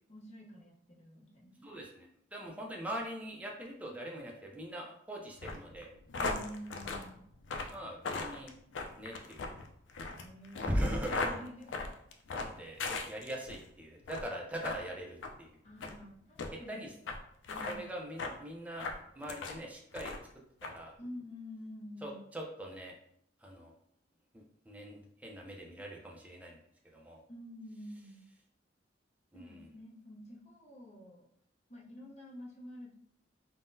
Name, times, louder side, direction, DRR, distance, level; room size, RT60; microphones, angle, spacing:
voice 1, 0.1-1.7 3.9-4.0 6.1-7.2 10.2-11.8 15.6-16.9 17.5-18.0 21.0-22.2 27.3-28.2 29.3-31.3 31.7-32.9, left 1 dB, 35° left, -4 dB, 0.7 m, -48 dB
voice 2, 1.6-2.1 2.3-5.9 7.7-8.5 9.0-9.5 10.6-11.4 12.3-15.5 16.7-16.9 17.7-20.1 20.6-20.9 22.0-22.9 23.4-23.7 24.3-26.6 26.9-27.2 29.3-29.7, equal, 10° right, -1 dB, 0.5 m, -41 dB
sound 1, 5.4-13.6 14.0-14.3 14.6-14.8 15.2-15.3 15.8-16.0 16.4-16.5 17.1-17.2 17.4-17.8 18.2-18.4 18.8-19.6 19.9-20.3 20.6-20.7, left 3 dB, 90° left, 0.4 m, -38 dB
3.7 x 2.1 x 2.6 m, 0.70 s
head